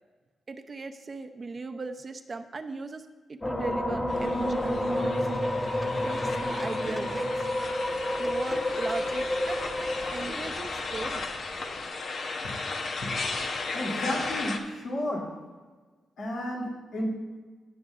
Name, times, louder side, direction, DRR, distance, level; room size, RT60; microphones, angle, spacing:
voice 1, 0.5-5.2 6.0-7.5 8.2-11.3, right 3 dB, 40° right, 7 dB, 0.6 m, -38 dB
sound 1, 3.4-11.8, left 1 dB, 25° left, 1.9 m, -30 dB
sound 2, 4.1-14.6, left 3 dB, 65° left, 0.9 m, -35 dB
sound 3, 5.2-10.5, equal, 5° left, 1.2 m, -45 dB
voice 2, 13.7-15.3 16.2-17.1, left 1 dB, 85° left, -4 dB, 2.9 m, -32 dB
18.0 x 6.5 x 2.5 m, 1.4 s
cardioid pair, 75°, 0 cm